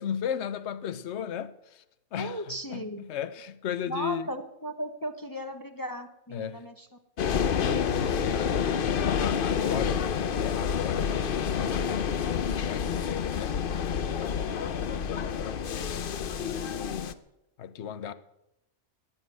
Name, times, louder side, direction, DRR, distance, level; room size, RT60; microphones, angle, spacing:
voice 1, 0.0-1.8 2.1-4.3 6.3-6.6 7.3-10.1 10.4-13.6 14.1-17.2 17.6-18.1, left 8 dB, 70° left, 1.1 m, -36 dB
voice 2, 2.2-3.0 3.9-6.9 9.6-9.9, equal, 20° left, 0.9 m, -36 dB
sound 1, 7.2-17.1, left 7 dB, 55° left, 0.8 m, -28 dB
15.5 x 9.7 x 7.8 m
omnidirectional pair, 1.2 m